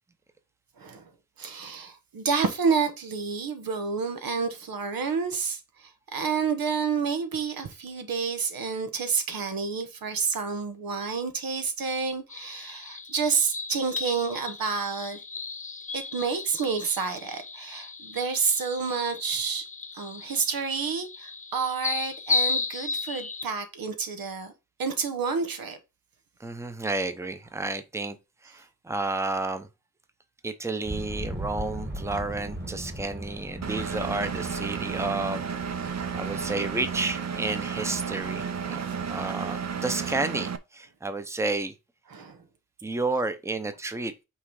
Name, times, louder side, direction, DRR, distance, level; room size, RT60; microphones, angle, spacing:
voice 1, 0.8-1.1 1.4-15.2 15.9-19.7 19.9-24.5 24.8-25.8 36.4-36.5 38.6-38.8 42.1-42.4, right 5 dB, 90° right, 1.2 m, -29 dB
sound 1, 12.3-23.4, left 4 dB, 25° left, 0.5 m, -34 dB
voice 2, 26.4-28.2 28.4-29.7 30.4-35.5 36.1-41.7 42.8-44.1, right 3 dB, 10° right, 0.7 m, -31 dB
sound 2, 30.8-39.9, right 1 dB, 30° right, 1.9 m, -39 dB
Engine, 33.6-40.6, right 6 dB, 50° right, 0.7 m, -32 dB
5.7 x 3.7 x 4.8 m
wide cardioid pair, 105°, 34 cm